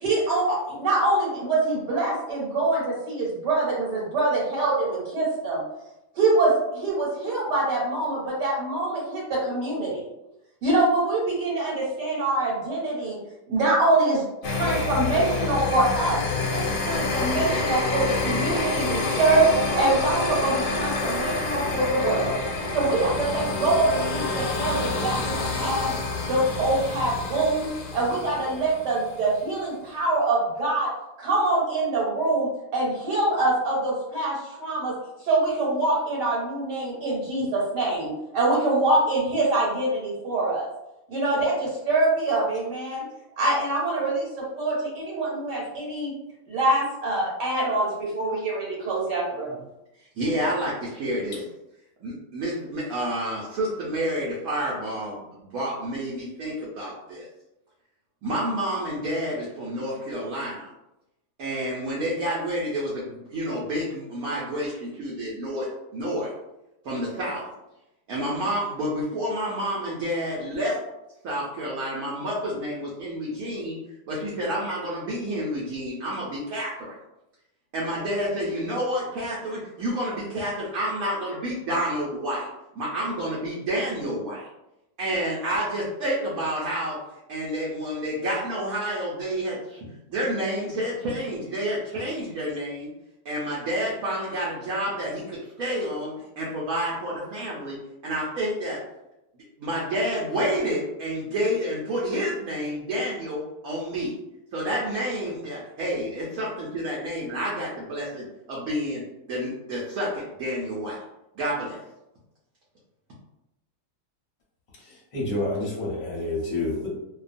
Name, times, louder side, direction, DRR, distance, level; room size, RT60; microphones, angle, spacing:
voice 1, 0.0-5.6 6.1-10.0 10.6-13.2 13.5-16.2 16.5-19.5 19.8-22.4 22.7-25.9 26.3-30.9 31.2-34.9 35.2-40.7 41.1-43.0 43.4-46.1 46.5-49.6, right 2 dB, 90° right, -5 dB, 1.4 m, -24 dB
sound 1, 14.4-29.2, left 3 dB, 90° left, 1.2 m, -28 dB
voice 2, 50.2-51.4 52.0-57.3 58.2-60.7 61.4-65.7 65.9-66.3 66.8-67.5 68.1-70.8 71.2-73.8 74.1-76.9 77.7-82.5 82.7-84.4 85.0-87.0 87.3-89.8 90.1-92.9 93.2-97.8 98.0-98.8 99.6-104.1 104.5-109.0 109.3-111.0 111.4-111.8, equal, 65° right, -5 dB, 1.0 m, -29 dB
voice 3, 115.1-116.9, left 2 dB, 40° left, -4 dB, 0.6 m, -28 dB
2.7 x 2.2 x 2.5 m, 0.91 s
omnidirectional pair, 1.8 m